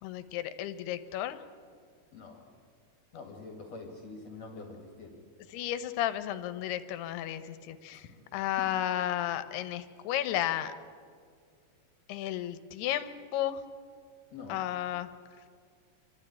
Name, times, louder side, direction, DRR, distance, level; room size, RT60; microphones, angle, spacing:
voice 1, 0.0-1.4 5.5-8.1 8.3-10.7 12.1-13.6 14.5-15.1, left 12 dB, 75° left, 12 dB, 2.7 m, -33 dB
voice 2, 2.1-2.5 3.1-5.2 7.9-8.0 14.3-14.6, left 3 dB, 50° left, 2 dB, 2.5 m, -45 dB
28.0 x 12.5 x 9.9 m, 2.1 s
omnidirectional pair, 4.9 m